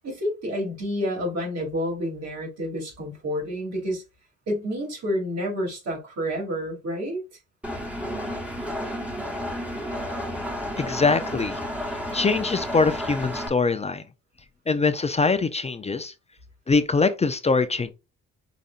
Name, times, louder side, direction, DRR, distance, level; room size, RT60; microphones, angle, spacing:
voice 1, 0.0-4.0 4.5-7.2, equal, 60° right, 2.9 m, -29 dB
Engine, 7.6-13.5, equal, 5° right, 1.2 m, -31 dB
voice 2, 10.8-11.6 12.1-14.0 14.7-16.1 16.7-17.9, left 4 dB, 20° left, 0.5 m, -23 dB
5.1 x 4.1 x 2.5 m
cardioid pair, 90°, 30 cm